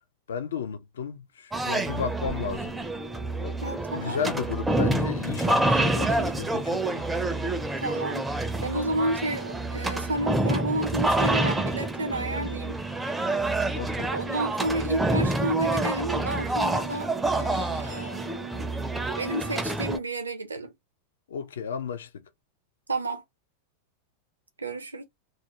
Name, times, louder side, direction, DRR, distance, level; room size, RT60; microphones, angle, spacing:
voice 1, 0.3-2.8 3.4-3.6 3.9-7.1 13.8-14.1 21.3-22.1, left 7 dB, 65° left, 0.4 m, -33 dB
sound 1, 1.5-20.0, right 2 dB, 10° right, 0.4 m, -27 dB
voice 2, 3.6-4.2 7.8-8.3 8.6-12.8 14.1-17.1 17.4-18.7 19.2-20.7 22.9-23.2 24.6-25.0, right 1 dB, 75° right, 0.6 m, -31 dB
2.3 x 2.1 x 2.9 m
figure-of-eight pair, 90°, 0 cm